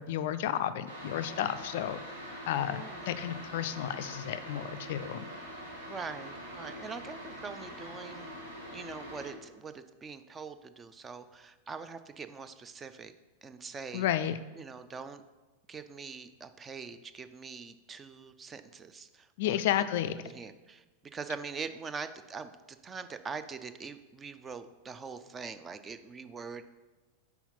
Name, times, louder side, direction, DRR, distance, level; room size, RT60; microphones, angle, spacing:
voice 1, 0.0-2.2 2.5-5.3 13.9-14.4 19.4-20.2, left 11 dB, 55° left, 12 dB, 0.3 m, -32 dB
sound 1, 0.9-9.3, equal, 70° right, 2.2 m, -44 dB
voice 2, 2.6-3.3 5.9-8.3 8.7-13.1 13.4-14.1 14.6-15.2 15.7-19.8 20.2-20.8 21.1-26.6, right 5 dB, 20° right, 11 dB, 0.4 m, -43 dB
5.7 x 4.5 x 5.5 m, 1.2 s
figure-of-eight pair, 90°, 0 cm